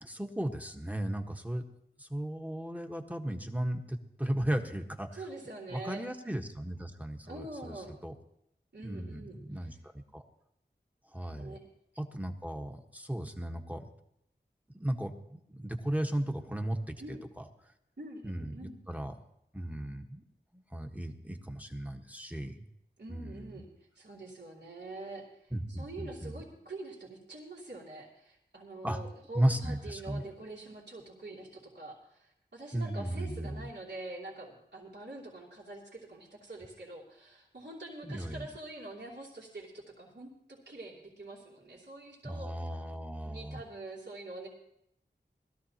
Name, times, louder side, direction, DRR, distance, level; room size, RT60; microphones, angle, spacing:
voice 1, 0.0-1.6 2.0-5.2 5.7-7.7 8.0-8.1 8.8-9.7 10.1-10.2 11.1-11.6 12.0-13.9 14.7-17.4 18.2-19.1 19.5-20.2 20.5-22.5 23.1-23.5 25.5-26.4 28.8-29.0 29.3-30.2 32.7-33.7 38.0-38.5 42.2-43.6, right 1 dB, 10° right, 4 dB, 1.3 m, -35 dB
voice 2, 5.1-6.0 7.3-7.9 8.7-9.7 11.1-11.6 17.0-17.2 18.0-18.8 23.0-23.7 23.9-42.8 43.2-44.5, right 2 dB, 70° right, -5 dB, 2.9 m, -45 dB
20.5 x 13.5 x 2.9 m, 0.78 s
wide cardioid pair, 50°, 19 cm